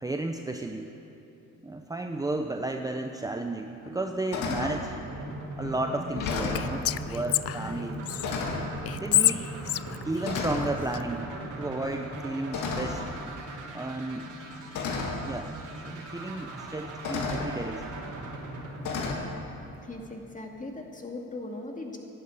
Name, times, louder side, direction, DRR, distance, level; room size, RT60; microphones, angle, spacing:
voice 1, 0.0-0.9 1.6-5.0 5.6-8.0 9.0-9.5 10.0-11.3 11.6-13.0 13.7-14.4 15.3-15.6 15.8-18.0, right 2 dB, 10° right, 4 dB, 0.7 m, -33 dB
sound 1, 3.2-3.3 3.8-4.0 4.3-4.8 5.6-5.7 6.1-6.7 7.7-7.9 8.2-8.7 9.6-9.9 10.2-10.7 12.5-13.1 14.2-14.3 14.7-15.2 16.4-16.5 17.0-17.5 18.8-19.2, left 4 dB, 80° left, 2.0 m, -32 dB
voice 2, 5.0-5.3 10.2-10.8 19.8-22.0, left 2 dB, 25° left, 1 dB, 2.4 m, -41 dB
sound 2, 5.1-20.0, right 1 dB, 85° right, 3.1 m, -40 dB
Whispering, 6.3-8.3 8.9-11.0, left 13 dB, 50° left, 0.4 m, -28 dB
12.5 x 11.5 x 8.9 m, 2.9 s
cardioid pair, 90°, 30 cm